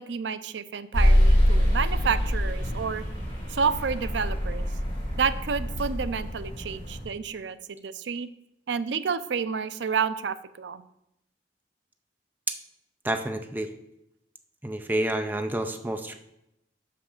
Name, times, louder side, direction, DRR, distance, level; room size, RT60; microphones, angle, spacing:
voice 1, 0.0-3.0 3.5-4.6 5.2-8.3 8.7-10.8, right 6 dB, 75° right, 13 dB, 0.5 m, -30 dB
sound 1, 0.9-7.0, equal, 25° left, 3.6 m, -25 dB
voice 2, 13.0-13.7 14.6-16.2, right 1 dB, 10° right, 6 dB, 0.5 m, -29 dB
6.1 x 5.8 x 6.5 m, 0.84 s
head